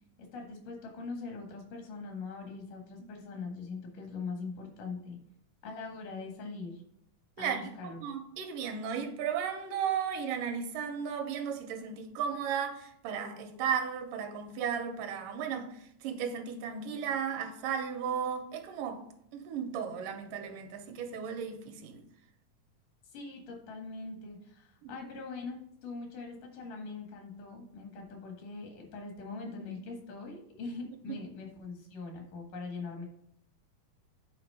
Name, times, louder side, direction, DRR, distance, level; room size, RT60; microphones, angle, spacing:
voice 1, 0.2-5.2 5.6-6.8 7.4-8.0 23.1-33.1, left 4 dB, 70° left, 3.1 m, -42 dB
voice 2, 7.4-15.7 16.0-19.0 19.3-22.0 24.8-24.9 31.1-31.2, right 7 dB, 80° right, 2.4 m, -35 dB
8.9 x 4.0 x 5.4 m
omnidirectional pair, 3.9 m